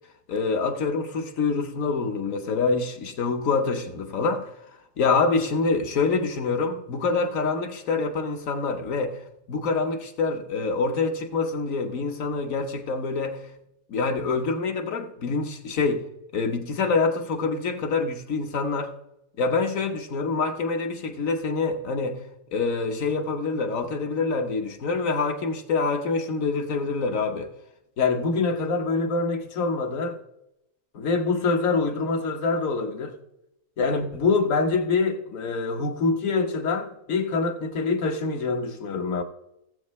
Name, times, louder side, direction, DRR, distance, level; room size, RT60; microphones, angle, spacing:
voice 1, 0.3-4.5 5.0-9.2 9.5-13.4 13.9-16.0 16.3-18.9 19.4-22.2 22.5-27.5 28.0-30.2 30.9-33.1 33.8-39.2, left 4 dB, 80° left, 1.5 m, -25 dB
15.5 x 8.1 x 3.1 m
omnidirectional pair, 1.4 m